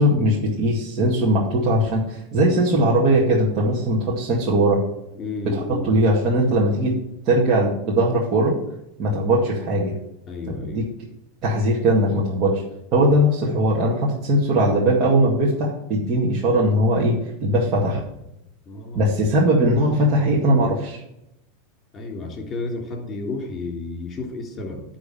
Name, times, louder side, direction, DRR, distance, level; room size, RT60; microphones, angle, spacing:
voice 1, 0.0-4.8 5.5-7.0 7.3-8.5 9.0-9.9 10.5-10.8 11.4-12.6 12.9-17.2 17.4-18.0 18.9-21.0, right 1 dB, 45° right, -5 dB, 2.0 m, -20 dB
voice 2, 5.1-5.9 10.3-10.9 18.6-19.1 21.9-24.8, left 3 dB, 30° left, 0 dB, 3.3 m, -32 dB
9.8 x 3.8 x 6.9 m, 0.85 s
hypercardioid pair, 95°, 0 cm